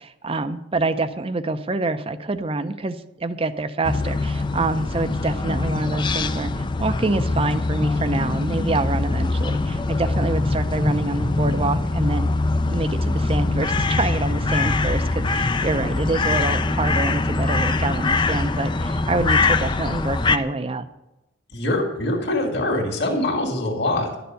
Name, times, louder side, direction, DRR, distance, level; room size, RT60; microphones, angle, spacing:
voice 1, 0.0-12.3 12.7-20.9, right 2 dB, 25° right, 11 dB, 0.5 m, -26 dB
sound 1, 3.8-20.4, left 3 dB, 20° left, 0.4 m, -23 dB
voice 2, 21.5-24.2, left 1 dB, 50° left, 0 dB, 2.2 m, -23 dB
11.5 x 6.9 x 9.1 m, 0.99 s
head